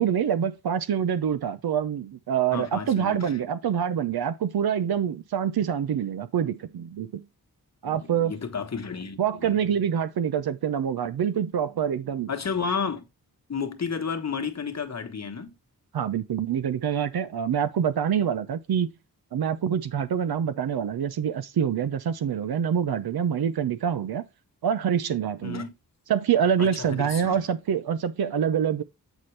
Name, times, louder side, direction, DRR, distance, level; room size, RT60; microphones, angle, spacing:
voice 1, 0.0-7.2 7.8-8.3 9.2-12.3 15.9-18.9 19.3-24.2 24.6-25.6 26.1-28.8, right 8 dB, 80° right, 0.7 m, -26 dB
voice 2, 2.5-3.4 7.8-9.6 12.3-13.0 13.5-15.5 25.4-25.7 26.6-27.4, left 5 dB, 45° left, 1.2 m, -32 dB
8.2 x 4.3 x 3.2 m
cardioid pair, 70°, 37 cm